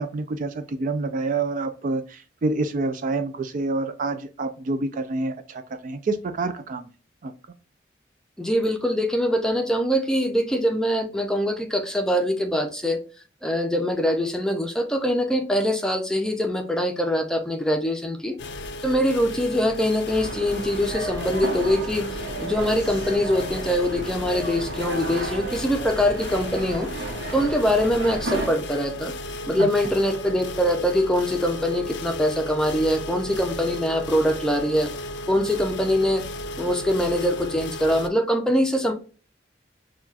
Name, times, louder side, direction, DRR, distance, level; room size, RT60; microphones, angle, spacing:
voice 1, 0.0-6.9 7.2-7.3 29.6-29.7, right 3 dB, 45° right, 0.3 m, -27 dB
voice 2, 8.4-13.0 13.4-18.4 18.8-22.1 22.4-26.9 27.3-29.1 29.5-34.9 35.3-36.2 36.6-38.9, equal, 5° left, 0.5 m, -23 dB
sound 1, 18.4-38.1, left 1 dB, 75° left, 0.4 m, -35 dB
sound 2, 20.1-28.5, right 2 dB, 80° right, 1.0 m, -33 dB
5.8 x 2.4 x 2.4 m
head